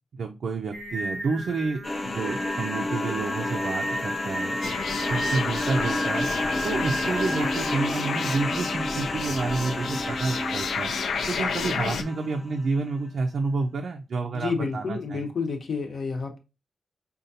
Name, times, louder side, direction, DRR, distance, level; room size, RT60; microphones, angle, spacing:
voice 1, 0.1-4.6 5.1-6.3 6.6-10.9 11.3-15.3, right 4 dB, 70° right, 3 dB, 0.4 m, -29 dB
Singing, 0.7-7.7, equal, 20° right, 0.6 m, -33 dB
sound 1, 1.8-12.6, left 1 dB, 25° left, 0.5 m, -31 dB
sound 2, 4.6-12.0, left 5 dB, 80° left, 0.4 m, -31 dB
voice 2, 14.3-16.4, left 4 dB, 55° left, 4 dB, 0.8 m, -30 dB
5.0 x 2.3 x 2.7 m, 0.27 s
wide cardioid pair, 140°, 0 cm